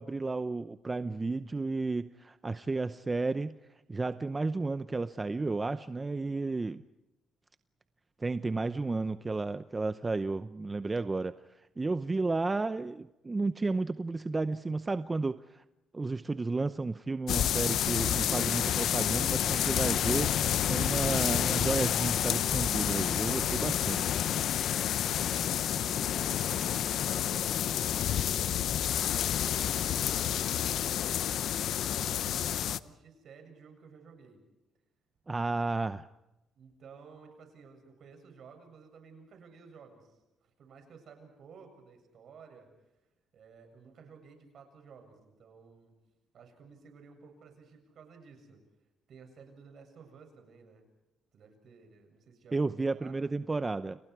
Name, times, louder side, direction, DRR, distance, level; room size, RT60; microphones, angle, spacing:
voice 1, 0.0-3.6 3.9-6.8 8.2-11.3 11.8-15.6 15.9-24.0 35.3-36.1 52.5-54.0, right 3 dB, 25° right, 12 dB, 0.7 m, -32 dB
sound 1, 17.3-32.8, left 10 dB, 75° left, 0.8 m, -29 dB
voice 2, 23.5-23.8 25.0-29.2 29.5-34.4 36.6-42.7 43.3-45.9 46.3-48.6 49.1-50.8 51.3-53.2, right 5 dB, 65° right, 5 dB, 7.6 m, -54 dB
29.5 x 29.5 x 4.8 m, 0.95 s
cardioid pair, 90°, 0 cm